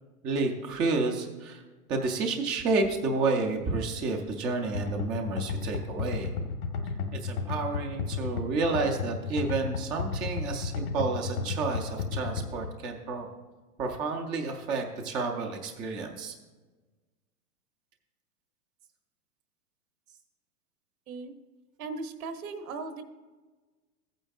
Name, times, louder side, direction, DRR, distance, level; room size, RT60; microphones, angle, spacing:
voice 1, 0.2-1.6 1.9-6.3 7.2-13.3 13.8-16.3, right 3 dB, 10° right, 2 dB, 0.3 m, -30 dB
sound 1, 4.7-12.7, left 5 dB, 75° left, 1.6 m, -33 dB
voice 2, 21.8-23.0, right 4 dB, 65° right, 8 dB, 1.2 m, -37 dB
15.0 x 8.9 x 2.4 m, 1.3 s
hypercardioid pair, 110°, 45 cm